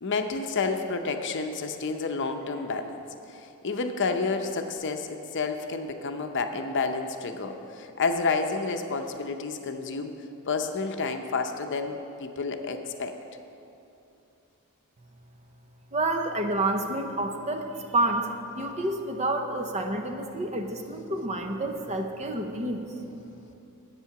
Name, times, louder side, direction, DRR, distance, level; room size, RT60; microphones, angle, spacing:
voice 1, 0.0-3.0 3.3-10.2 10.5-13.2, left 4 dB, 55° left, 6 dB, 0.7 m, -30 dB
voice 2, 15.9-22.9, right 2 dB, 30° right, 4 dB, 0.7 m, -29 dB
10.0 x 8.3 x 5.9 m, 2.8 s
head